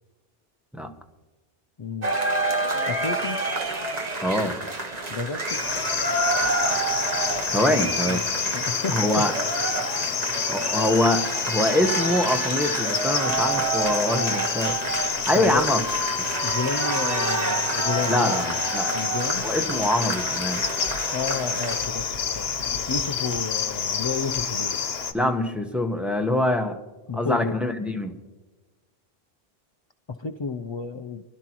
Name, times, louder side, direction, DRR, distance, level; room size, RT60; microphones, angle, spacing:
voice 1, 1.8-2.2 2.9-3.5 5.1-5.6 7.7-8.2 8.5-9.3 15.3-15.7 16.4-18.4 18.9-19.5 21.1-22.1 22.3-22.5 22.9-24.8 27.1-27.5 30.2-31.2, left 5 dB, 45° left, 7 dB, 0.4 m, -31 dB
sound 1, 2.0-21.9, right 2 dB, 40° right, 1.4 m, -28 dB
voice 2, 4.2-4.6 7.5-8.2 8.9-9.3 10.5-14.8 15.3-15.8 16.2-16.3 18.1-18.9 19.4-20.6 25.1-26.8 27.1-28.2, left 1 dB, ahead, 4 dB, 0.9 m, -24 dB
Cricket, 5.5-25.1, left 6 dB, 75° left, 1.2 m, -28 dB
24.5 x 12.0 x 3.0 m, 1.2 s
omnidirectional pair, 1.0 m